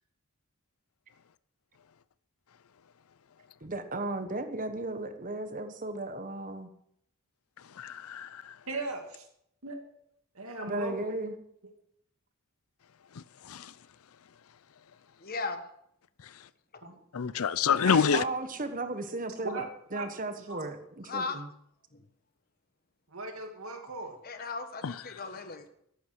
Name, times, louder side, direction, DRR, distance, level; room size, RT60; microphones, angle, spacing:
voice 1, 3.6-6.7 10.7-11.3 18.0-21.5, right 2 dB, 35° right, 1.3 m, -35 dB
voice 2, 7.8-8.5 13.4-13.7 17.1-18.2 24.8-24.9, left 6 dB, 70° left, 0.5 m, -27 dB
voice 3, 8.7-9.2 9.6-9.8 10.3-11.2 16.8-16.9 17.9-18.0 19.4-19.6 19.9-20.1 20.5-20.6 23.1-24.2, right 2 dB, 70° right, 2.6 m, -37 dB
voice 4, 15.2-15.6 16.7-16.8 21.0-21.4 21.9-22.0 24.2-25.7, left 4 dB, 40° left, 1.3 m, -37 dB
14.0 x 11.5 x 4.7 m
head